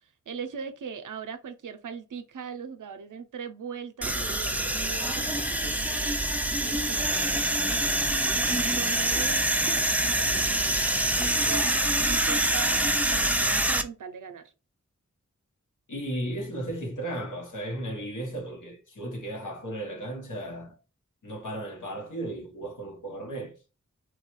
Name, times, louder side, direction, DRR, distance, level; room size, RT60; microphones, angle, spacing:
voice 1, 0.3-6.2 6.6-8.0 8.5-14.5, right 6 dB, 90° right, 0.5 m, -40 dB
sound 1, 4.0-13.8, right 1 dB, 5° right, 0.3 m, -25 dB
voice 2, 15.9-20.8 21.2-23.5, right 1 dB, 80° left, 1.0 m, -35 dB
3.1 x 2.2 x 3.0 m
wide cardioid pair, 45°, 30 cm